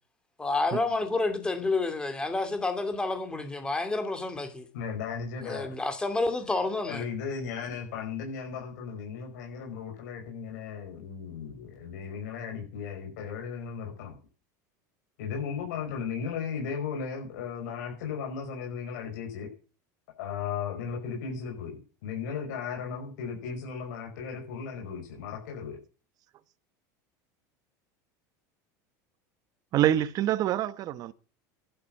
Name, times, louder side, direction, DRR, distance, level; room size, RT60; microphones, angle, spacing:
voice 1, 0.4-4.6 5.4-7.0, left 3 dB, 10° left, 2.8 m, -29 dB
voice 2, 4.7-5.8 6.9-14.2 15.2-19.5 20.2-21.8 22.0-25.8, left 6 dB, 85° left, 5.7 m, -36 dB
voice 3, 29.7-31.1, right 12 dB, 40° right, 1.1 m, -26 dB
11.5 x 10.0 x 7.6 m
supercardioid pair, 140°, 9 cm